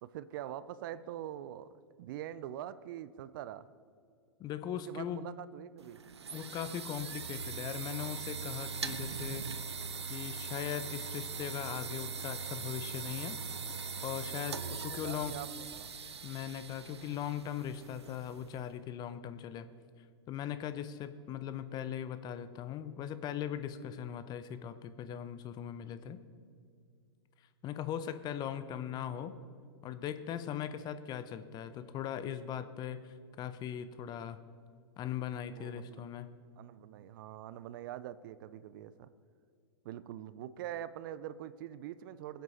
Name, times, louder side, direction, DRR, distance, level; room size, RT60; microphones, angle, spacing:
voice 1, 0.0-3.7 4.9-6.0 14.7-15.9 35.5-36.1 36.6-39.1 39.8-42.4, right 11 dB, 50° right, 15 dB, 0.6 m, -44 dB
voice 2, 4.4-5.3 6.3-9.5 10.1-13.4 14.0-15.3 16.2-19.7 20.3-26.2 27.6-29.3 29.8-34.4 35.0-36.3, left 9 dB, 30° left, 12 dB, 0.8 m, -39 dB
sound 1, 5.8-18.6, right 5 dB, 85° right, 0.8 m, -41 dB
21.5 x 8.1 x 4.2 m, 2.3 s
hypercardioid pair, 110°, 14 cm